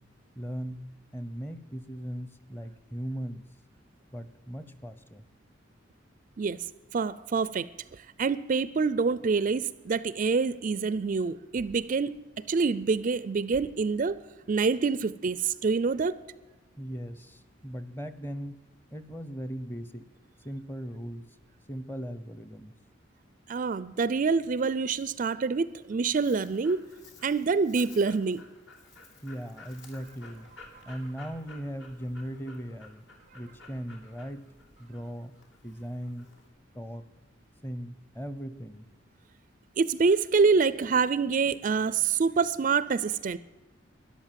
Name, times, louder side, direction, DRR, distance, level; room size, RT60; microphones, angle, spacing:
voice 1, 0.4-0.8 1.1-3.4 4.1-5.2 16.8-18.5 18.9-20.1 20.4-21.2 21.7-22.7 29.2-30.5 30.9-33.0 33.3-34.4 34.8-35.4 35.6-36.3 36.7-37.0 37.6-38.9, equal, 10° left, 0.8 m, -38 dB
voice 2, 6.9-7.7 8.2-12.2 12.5-14.2 14.5-16.2 23.5-26.9 27.2-28.5 39.8-43.4, right 4 dB, 45° right, 0.4 m, -26 dB
Dog, 25.7-36.5, left 3 dB, 70° left, 3.0 m, -53 dB
13.0 x 11.0 x 7.4 m
head